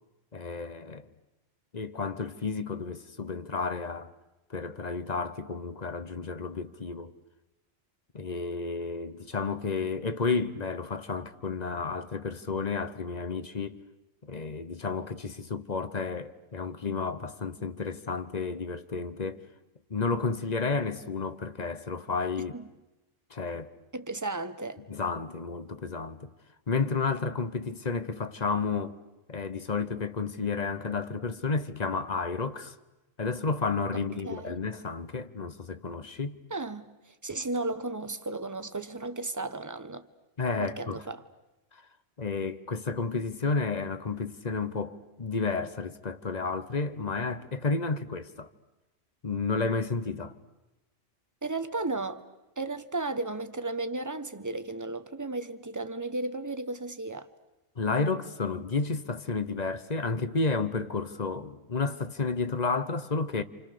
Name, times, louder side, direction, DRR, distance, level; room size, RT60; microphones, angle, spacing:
voice 1, 0.3-1.0 1.7-4.1 4.5-7.1 8.1-13.8 14.2-19.4 19.9-22.6 23.3-23.7 24.9-26.3 26.7-29.0 29.3-32.8 33.2-36.4 40.4-41.0 41.7-41.8 42.2-48.5 49.2-50.4 57.8-63.4, left 4 dB, 35° left, 1.0 m, -31 dB
voice 2, 23.9-24.8 33.9-34.6 36.5-40.0 40.6-41.2 51.4-52.2 52.6-57.3, right 2 dB, 15° right, 1.0 m, -34 dB
29.5 x 27.5 x 6.8 m
omnidirectional pair, 1.3 m